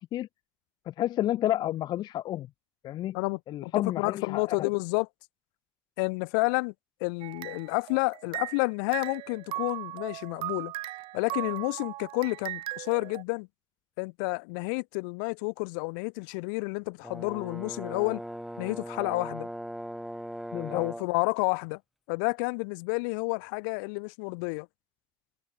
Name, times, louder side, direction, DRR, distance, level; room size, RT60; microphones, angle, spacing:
voice 1, 0.9-2.5 2.8-3.2 3.5-4.6 20.5-20.8, left 13 dB, 45° left, 0.4 m, -30 dB
voice 2, 3.1-5.1 6.0-6.7 7.0-10.7 11.1-13.5 14.0-18.2 18.6-19.5 20.7-21.8 22.1-24.7, left 32 dB, 75° left, 2.0 m, -30 dB
sound 1, 7.2-8.7 8.9-13.2, right 17 dB, 60° right, 2.2 m, -38 dB
Brass instrument, 17.0-21.2, equal, ahead, 3.0 m, -39 dB
supercardioid pair, 110°, 10 cm